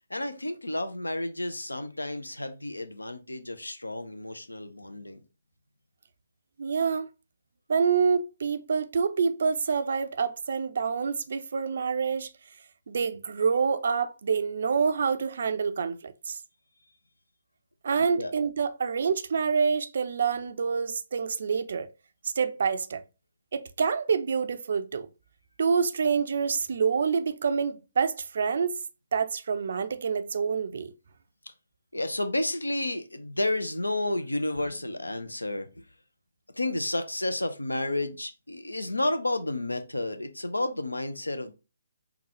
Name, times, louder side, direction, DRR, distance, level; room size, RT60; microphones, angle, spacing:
voice 1, 0.1-5.2 18.2-18.3 31.9-35.8 36.6-41.5, left 1 dB, 85° left, 0.5 m, -31 dB
voice 2, 6.6-7.1 7.7-12.3 12.9-16.4 17.8-21.9 22.2-23.0 23.5-25.1 25.6-28.8 29.1-30.9, right 6 dB, 55° right, 0.4 m, -27 dB
3.8 x 2.3 x 2.9 m
figure-of-eight pair, 140°, 0 cm